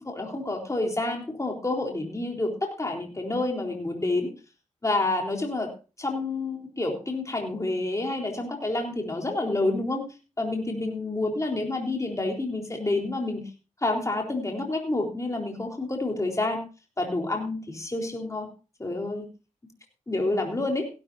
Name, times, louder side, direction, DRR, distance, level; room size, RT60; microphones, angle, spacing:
voice 1, 0.0-4.3 4.8-5.7 6.0-13.5 13.8-16.6 17.0-18.5 18.8-19.3 20.1-20.9, left 2 dB, 25° left, 1 dB, 3.8 m, -28 dB
17.0 x 12.0 x 2.7 m, 0.32 s
cardioid pair, 50°, 12 cm